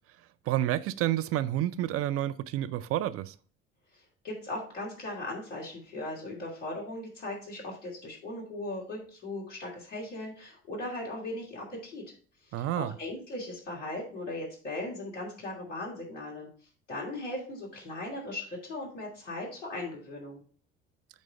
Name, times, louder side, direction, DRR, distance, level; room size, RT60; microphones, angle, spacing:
voice 1, 0.5-3.3 12.5-12.9, right 13 dB, 40° right, 0.5 m, -29 dB
voice 2, 4.2-12.0 12.6-16.5 16.9-20.4, left 2 dB, 85° left, 2.8 m, -38 dB
8.5 x 3.3 x 5.5 m
figure-of-eight pair, 60°, 35 cm